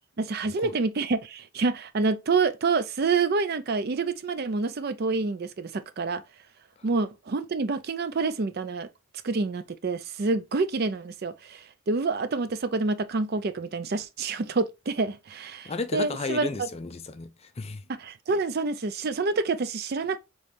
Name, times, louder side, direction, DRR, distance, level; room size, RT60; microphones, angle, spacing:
voice 1, 0.2-6.2 6.8-8.9 9.2-16.7 17.9-20.2, right 4 dB, 45° right, 0.4 m, -27 dB
voice 2, 15.6-17.8, left 3 dB, 30° left, 0.4 m, -33 dB
5.1 x 3.1 x 2.6 m
head